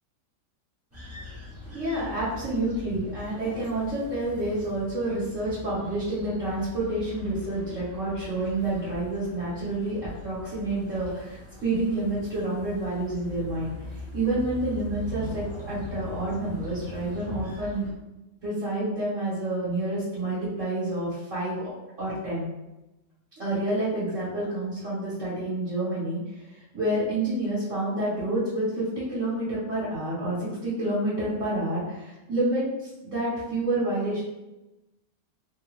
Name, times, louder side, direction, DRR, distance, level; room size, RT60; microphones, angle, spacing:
sound 1, 0.9-17.9, left 1 dB, 20° right, 0.4 m, -41 dB
voice 1, 1.6-13.7 14.1-17.9 18.4-21.7 22.0-22.5 23.4-34.2, right 1 dB, 50° right, -9 dB, 1.3 m, -29 dB
3.4 x 2.3 x 3.0 m, 0.99 s
omnidirectional pair, 1.8 m